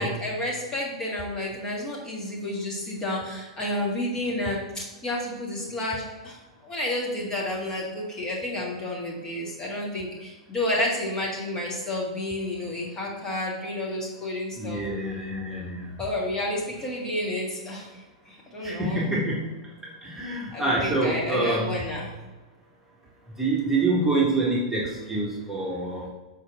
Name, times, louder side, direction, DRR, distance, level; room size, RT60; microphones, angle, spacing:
voice 1, 0.0-6.4 6.6-14.8 16.0-19.1 20.5-22.1, left 1 dB, 20° left, -3 dB, 1.8 m, -30 dB
voice 2, 14.6-15.8 18.6-19.4 20.0-21.7 23.4-26.1, right 2 dB, 10° right, -5 dB, 1.6 m, -26 dB
6.7 x 5.0 x 3.6 m, 1.2 s
figure-of-eight pair, 100°, 3 cm